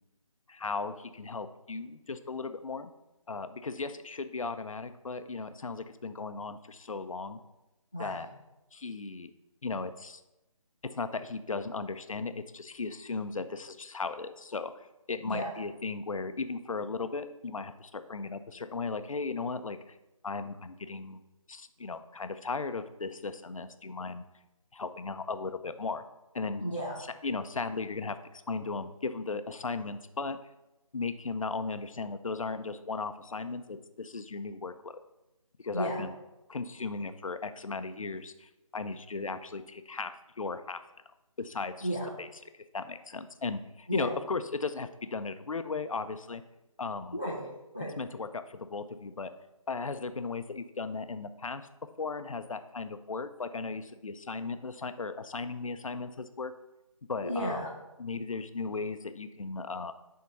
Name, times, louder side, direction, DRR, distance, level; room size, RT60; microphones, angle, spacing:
voice 1, 0.5-2.9 3.3-7.4 8.0-8.3 8.7-9.3 9.6-10.2 10.9-14.7 15.1-19.8 20.2-21.2 21.5-24.2 24.7-26.0 26.3-26.6 27.2-28.2 28.5-30.4 30.9-34.9 35.6-36.1 36.5-40.8 41.4-41.9 42.2-42.3 42.7-46.4 46.8-47.2 48.0-49.3 49.7-51.6 52.0-56.5 57.1-57.6 58.0-59.9, left 4 dB, 70° left, 10 dB, 0.5 m, -36 dB
voice 2, 7.9-8.3 15.2-15.5 26.6-27.0 35.7-36.1 41.8-42.1 43.9-44.2 47.1-48.0 57.2-57.7, equal, 15° left, -5 dB, 0.4 m, -33 dB
7.0 x 3.7 x 5.4 m, 0.96 s
figure-of-eight pair, 165°, 18 cm